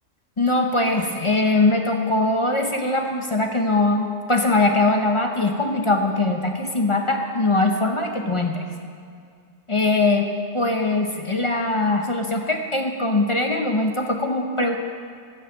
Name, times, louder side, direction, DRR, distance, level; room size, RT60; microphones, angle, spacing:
voice 1, 0.4-8.7 9.7-10.3 10.5-14.8, left 2 dB, 30° left, 3 dB, 0.7 m, -21 dB
12.0 x 7.1 x 7.6 m, 2.2 s
omnidirectional pair, 1.4 m